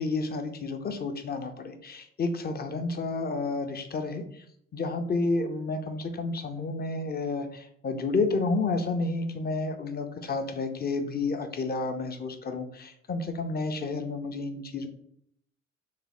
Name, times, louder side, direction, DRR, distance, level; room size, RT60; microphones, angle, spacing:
voice 1, 0.0-4.4 4.7-14.9, left 3 dB, 35° left, 7 dB, 0.5 m, -30 dB
3.5 x 2.1 x 3.3 m, 0.68 s
cardioid pair, 90°, 30 cm